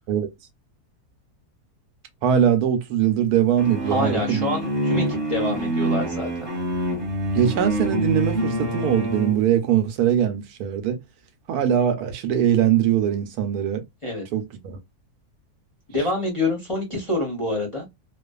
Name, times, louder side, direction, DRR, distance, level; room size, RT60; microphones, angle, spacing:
voice 1, 2.2-4.4 7.3-11.0 11.5-13.8 14.3-14.8, right 9 dB, 80° right, 1.1 m, -21 dB
sound 1, 3.6-9.4, right 1 dB, 20° right, 1.0 m, -26 dB
voice 2, 3.9-6.3 14.0-14.2 15.9-17.9, left 2 dB, 30° left, 0.6 m, -26 dB
2.5 x 2.3 x 2.2 m
omnidirectional pair, 1.6 m